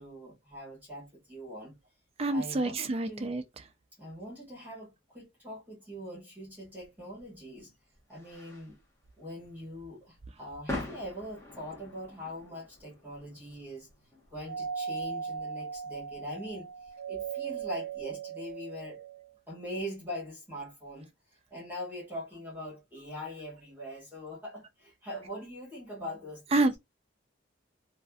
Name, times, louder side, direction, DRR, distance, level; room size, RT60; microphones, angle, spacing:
voice 1, 0.0-1.8 2.3-3.3 4.0-7.7 8.1-8.8 9.2-13.9 14.3-19.0 19.5-21.1 21.5-26.6, equal, 10° right, 1.6 m, -42 dB
voice 2, 2.2-3.4 26.5-26.8, right 2 dB, 30° right, 0.4 m, -27 dB
sound 1, 6.8-18.1, left 2 dB, 15° left, 1.0 m, -46 dB
Doorbell, 14.5-19.3, right 7 dB, 85° right, 0.6 m, -38 dB
3.2 x 2.5 x 2.3 m
head